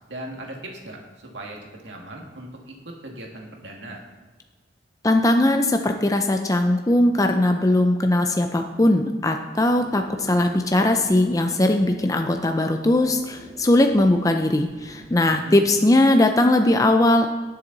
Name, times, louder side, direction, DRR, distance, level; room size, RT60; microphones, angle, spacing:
voice 1, 0.1-4.0 15.3-15.6, right 1 dB, 75° right, 0 dB, 2.0 m, -39 dB
voice 2, 5.0-17.3, left 1 dB, 20° left, 5 dB, 0.5 m, -19 dB
sound 1, 9.8-15.1, equal, 30° right, 3.3 m, -45 dB
18.0 x 6.9 x 4.0 m, 1.3 s
head